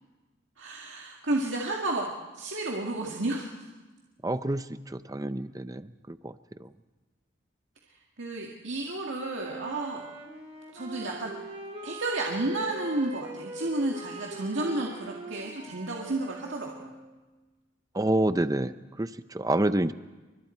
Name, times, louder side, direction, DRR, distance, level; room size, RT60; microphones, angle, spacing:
voice 1, 0.6-2.1 2.4-3.5 8.2-10.0 10.7-11.3 11.8-16.9, right 2 dB, 70° right, -1 dB, 2.0 m, -31 dB
voice 2, 4.2-6.3 6.6-6.7 17.9-19.9, right 1 dB, 20° right, 12 dB, 0.6 m, -28 dB
Wind instrument woodwind instrument, 9.2-17.2, right 2 dB, 35° right, 3.4 m, -42 dB
29.5 x 25.0 x 4.5 m, 1.2 s
head